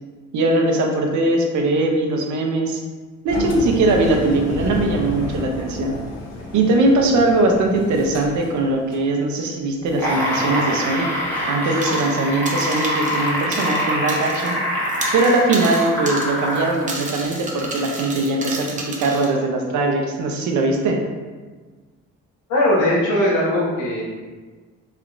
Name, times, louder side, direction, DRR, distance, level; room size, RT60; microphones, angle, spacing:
voice 1, 0.3-2.8 3.2-6.0 6.5-11.1 11.5-14.6 15.1-21.0, right 2 dB, 70° right, 2 dB, 0.6 m, -20 dB
Engine, 3.3-9.1, left 3 dB, 60° left, 0.7 m, -30 dB
sound 1, 9.9-16.8 17.6-17.7, equal, 5° left, 1.2 m, -24 dB
sound 2, 11.8-12.2 12.5-14.6 14.8-19.3, right 2 dB, 25° right, 0.6 m, -32 dB
voice 2, 22.5-24.0, left 1 dB, 85° left, -5 dB, 1.1 m, -19 dB
3.3 x 3.0 x 2.5 m, 1.4 s
cardioid pair, 90°, 30 cm